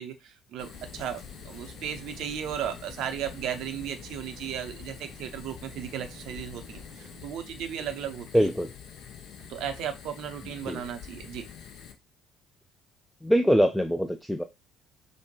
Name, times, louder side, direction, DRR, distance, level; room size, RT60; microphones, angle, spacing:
voice 1, 0.0-8.5 9.5-11.4, right 9 dB, 55° right, 7 dB, 0.6 m, -35 dB
Fire, 0.6-11.9, left 8 dB, 55° left, 0.6 m, -46 dB
sound 1, 0.7-7.2, left 1 dB, 35° left, 2.0 m, -50 dB
voice 2, 8.3-8.7 10.6-10.8 13.2-14.4, equal, 5° left, 7 dB, 0.4 m, -23 dB
5.2 x 2.1 x 2.9 m, 0.24 s
figure-of-eight pair, 50°, 0 cm